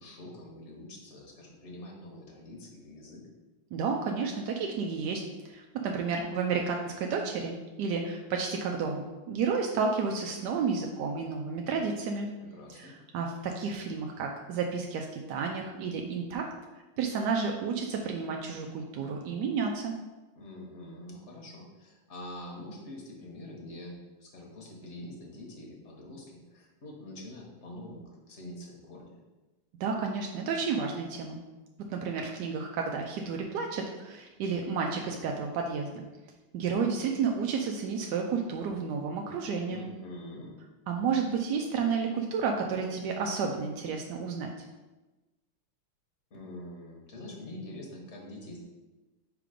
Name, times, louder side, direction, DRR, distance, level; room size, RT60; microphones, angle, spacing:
voice 1, 0.0-3.2 12.4-12.9 20.4-29.2 39.7-40.5 46.3-48.6, left 1 dB, 40° left, -1 dB, 1.2 m, -45 dB
voice 2, 3.7-5.2 5.5-12.3 12.7-16.5 17.0-20.0 29.8-31.4 31.9-36.0 36.5-39.8 40.9-44.5, right 5 dB, 75° right, 1 dB, 1.0 m, -31 dB
4.9 x 3.8 x 5.0 m, 1.1 s
omnidirectional pair, 2.3 m